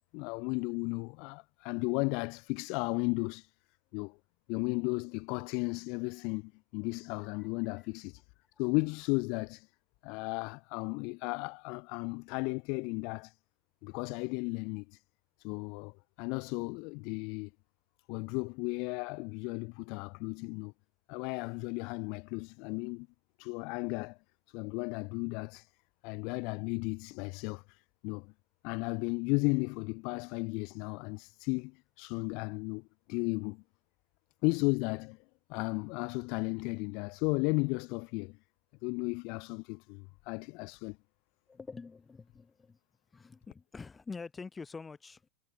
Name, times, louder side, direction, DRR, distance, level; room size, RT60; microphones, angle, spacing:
voice 1, 0.1-3.5 3.9-4.2 4.5-8.2 8.6-9.7 10.0-13.3 13.8-15.0 15.4-17.5 18.1-20.7 21.1-23.1 23.4-24.2 24.5-25.7 26.0-28.3 28.6-33.6 34.4-35.2 35.5-38.4 38.8-41.0, left 31 dB, 35° left, 0.4 m, -34 dB
voice 2, 7.1-7.5 41.5-42.8 43.1-45.3, left 4 dB, 10° left, 2.0 m, -46 dB
supercardioid pair, 175°, 0 cm